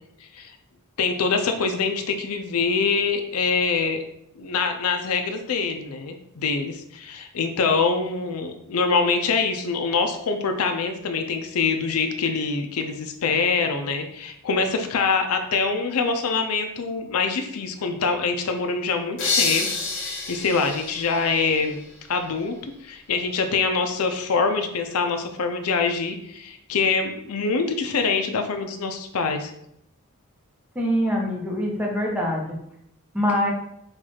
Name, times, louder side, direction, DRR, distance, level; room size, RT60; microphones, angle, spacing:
voice 1, 1.0-4.0 4.4-19.7 20.0-21.8 22.1-29.5, left 4 dB, 75° left, 6 dB, 0.5 m, -24 dB
sound 1, 19.2-22.0, left 4 dB, 55° left, 1.2 m, -28 dB
voice 2, 30.7-32.6 33.1-33.5, equal, 5° right, -2 dB, 0.8 m, -24 dB
4.5 x 2.4 x 4.3 m, 0.77 s
head